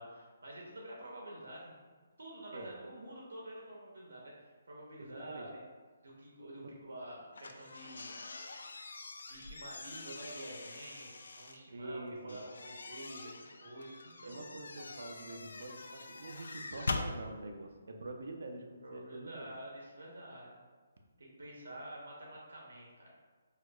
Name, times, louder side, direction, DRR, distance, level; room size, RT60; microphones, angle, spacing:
voice 1, 0.0-1.7 2.2-5.6 6.0-8.1 9.3-14.5 18.8-20.6 21.2-23.2, right 1 dB, 85° right, -3 dB, 0.9 m, -48 dB
voice 2, 5.0-5.5 11.7-12.4 14.2-19.5, right 2 dB, 65° right, 3 dB, 0.4 m, -45 dB
sound 1, 7.3-11.6 12.3-17.1, left 3 dB, 80° left, 0.3 m, -44 dB
4.5 x 2.3 x 2.3 m, 1.4 s
hypercardioid pair, 175°, 0 cm